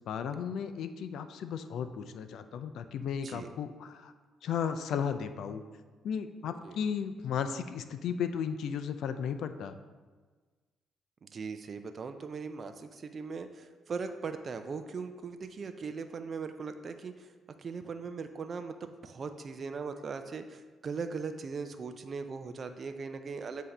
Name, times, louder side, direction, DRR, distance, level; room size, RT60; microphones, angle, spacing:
voice 1, 0.1-4.1 4.4-5.6 6.0-9.8, left 7 dB, 75° left, 9 dB, 0.4 m, -35 dB
voice 2, 6.4-6.8 11.2-17.3 17.6-23.6, right 5 dB, 45° right, 8 dB, 0.4 m, -39 dB
7.7 x 2.8 x 4.9 m, 1.4 s
cardioid pair, 90°, 0 cm